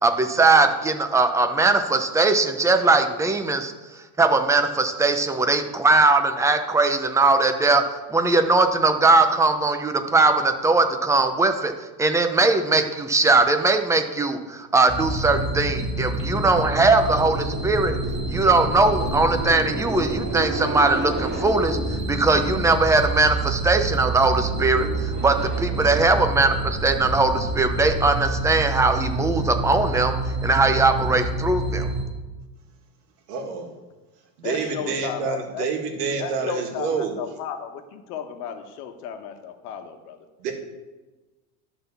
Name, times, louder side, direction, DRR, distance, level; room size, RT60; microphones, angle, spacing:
voice 1, 0.0-11.7 12.0-18.0 18.3-31.9, right 3 dB, 5° right, 7 dB, 0.6 m, -20 dB
sound 1, 14.9-32.0, right 2 dB, 25° right, 1.7 m, -27 dB
voice 2, 25.9-26.3 33.3-33.7 34.4-37.2 40.4-40.5, right 5 dB, 90° right, 4 dB, 1.7 m, -28 dB
voice 3, 34.4-35.7 36.2-40.2, left 7 dB, 80° left, 6 dB, 1.3 m, -34 dB
11.5 x 4.0 x 6.8 m, 1.2 s
supercardioid pair, 125°, 45 cm